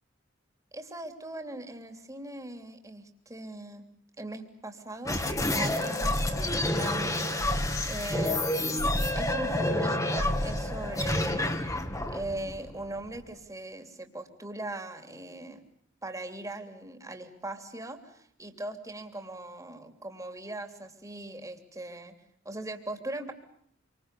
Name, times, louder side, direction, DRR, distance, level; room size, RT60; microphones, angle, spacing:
voice 1, 0.7-3.8 4.2-5.2 5.6-11.8 12.1-15.6 16.0-22.1 22.4-23.3, right 1 dB, 15° right, 6 dB, 3.2 m, -40 dB
sound 1, 5.0-13.3, left 1 dB, 15° left, 2.2 m, -29 dB
27.0 x 25.5 x 8.4 m, 0.65 s
head